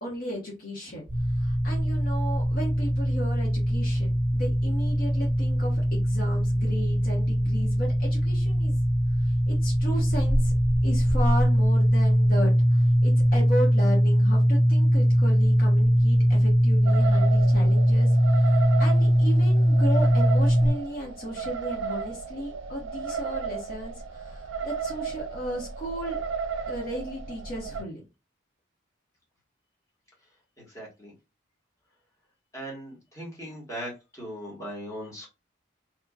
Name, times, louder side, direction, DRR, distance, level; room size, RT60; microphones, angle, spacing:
voice 1, 0.0-1.0 1.4-8.8 9.2-10.5 10.8-26.2 26.7-28.0, equal, 45° left, -2 dB, 1.0 m, -35 dB
sound 1, 1.1-20.7, equal, 10° right, 1.0 m, -21 dB
sound 2, 16.8-27.8, right 6 dB, 75° right, 0.4 m, -34 dB
voice 2, 30.7-31.1 32.5-33.9 34.2-35.3, equal, 15° left, -5 dB, 1.3 m, -38 dB
2.9 x 2.5 x 2.3 m, 0.26 s
head